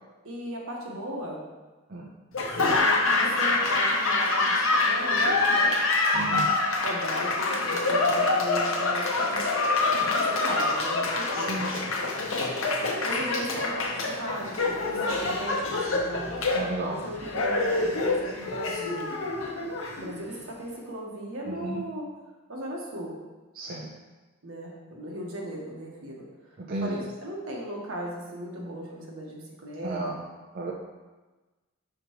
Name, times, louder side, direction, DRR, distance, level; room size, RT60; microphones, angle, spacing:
voice 1, 0.2-1.4 2.7-5.8 6.8-9.5 10.2-11.7 13.0-16.3 16.9-19.1 20.0-22.1 22.5-23.2 24.4-26.2 26.8-30.2, right 1 dB, 75° right, -2 dB, 1.3 m, -37 dB
Laughter / Applause, 2.3-20.4, left 3 dB, 70° left, 0.8 m, -26 dB
voice 2, 6.1-6.5 11.5-11.7 16.5-17.0 21.5-21.8 23.6-23.9 26.7-27.0 29.8-30.1 30.5-30.7, right 2 dB, 45° right, -2 dB, 0.5 m, -32 dB
6.0 x 5.1 x 3.0 m, 1.2 s
head